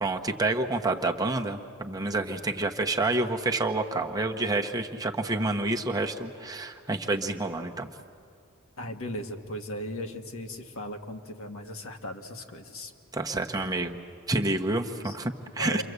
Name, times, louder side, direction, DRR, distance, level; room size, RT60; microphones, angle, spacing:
voice 1, 0.0-7.9 13.1-14.0 14.3-15.8, right 2 dB, 15° right, 3 dB, 1.1 m, -28 dB
voice 2, 8.8-12.9 15.0-15.2 15.6-15.8, left 1 dB, 65° left, 4 dB, 1.8 m, -37 dB
29.0 x 24.5 x 8.1 m, 2.3 s
head